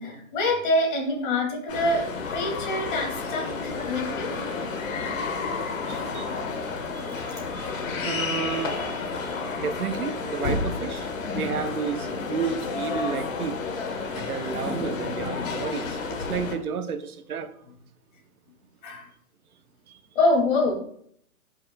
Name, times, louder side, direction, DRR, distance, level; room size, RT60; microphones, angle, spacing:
voice 1, 0.0-4.4 14.2-14.6 18.8-19.1 20.1-20.7, left 2 dB, 35° left, 2.6 m, -26 dB
sound 1, 1.7-16.6, left 4 dB, 60° left, 1.5 m, -31 dB
voice 2, 5.9-6.3 6.9-13.6 14.1-17.5, right 6 dB, 80° right, 0.9 m, -32 dB
11.5 x 5.7 x 2.3 m
hypercardioid pair, 150°, 43 cm